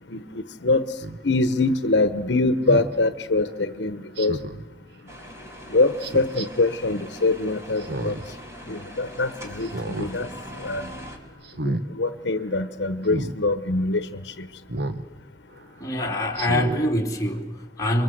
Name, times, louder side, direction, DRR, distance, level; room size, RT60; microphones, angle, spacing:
voice 1, 0.1-0.9 1.2-4.4 5.7-8.2 8.7-10.3 10.6-10.9 11.6-14.5, left 2 dB, 75° left, 1.0 m, -24 dB
Speech synthesizer, 1.0-1.2 2.7-2.9 4.2-4.6 6.0-6.5 7.8-8.3 8.7-8.8 9.6-10.1 10.5-10.8 11.4-11.8 13.1-13.3 14.7-15.0 15.5-15.6 16.3-16.8 17.3-17.4, right 1 dB, 65° right, 1.3 m, -30 dB
sound 1, 5.1-11.2, equal, 15° right, 3.7 m, -41 dB
voice 2, 15.8-18.0, left 1 dB, 20° left, 3.1 m, -24 dB
29.5 x 23.0 x 7.9 m
head